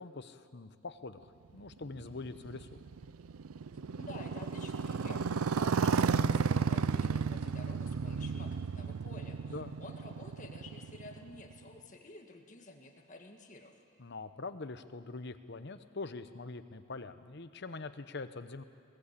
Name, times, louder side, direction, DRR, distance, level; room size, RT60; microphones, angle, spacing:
voice 1, 0.0-2.8 9.5-9.8 14.0-18.6, left 3 dB, 55° left, 10 dB, 0.9 m, -44 dB
Motorcycle, 1.7-11.6, right 5 dB, 90° right, 0.5 m, -33 dB
voice 2, 4.0-13.8, left 2 dB, 35° left, 2 dB, 1.9 m, -51 dB
20.5 x 18.0 x 8.5 m, 2.2 s
head